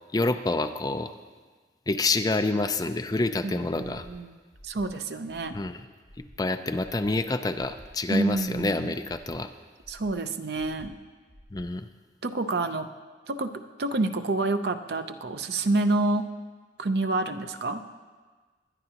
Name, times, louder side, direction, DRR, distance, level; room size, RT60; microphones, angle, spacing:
voice 1, 0.1-1.1 1.9-4.1 5.5-5.8 6.4-9.5 11.5-11.9, left 2 dB, 20° left, 8 dB, 0.4 m, -27 dB
voice 2, 3.4-4.4 4.6-5.6 8.1-8.9 9.9-10.9 12.2-12.9 13.3-13.5 13.8-16.3 16.8-17.8, right 2 dB, 60° right, 9 dB, 0.6 m, -28 dB
Breathing, 4.0-4.1 4.5-4.9 5.3-5.6 6.0-6.4 6.8-7.1 7.5-7.9 8.3-8.6 9.0-9.4 9.8-10.1 10.5-10.9 11.3-11.6, equal, 75° left, 4.9 m, -51 dB
21.5 x 11.0 x 2.9 m, 1.4 s
head